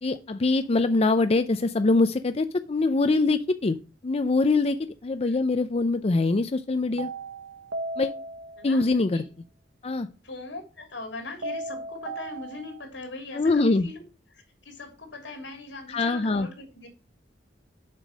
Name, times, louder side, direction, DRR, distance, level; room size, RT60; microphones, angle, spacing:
voice 1, 0.0-3.8 4.0-4.8 5.0-7.1 8.0-8.1 8.6-9.2 9.8-10.1 13.4-13.9 15.9-16.5, left 3 dB, 35° left, 10 dB, 0.5 m, -23 dB
sound 1, 7.0-8.9 11.4-12.9, right 2 dB, 70° right, 1.0 m, -36 dB
voice 2, 8.6-9.3 10.2-14.0 14.3-16.9, left 3 dB, 85° left, 3 dB, 3.1 m, -41 dB
7.4 x 5.2 x 6.2 m, 0.34 s
head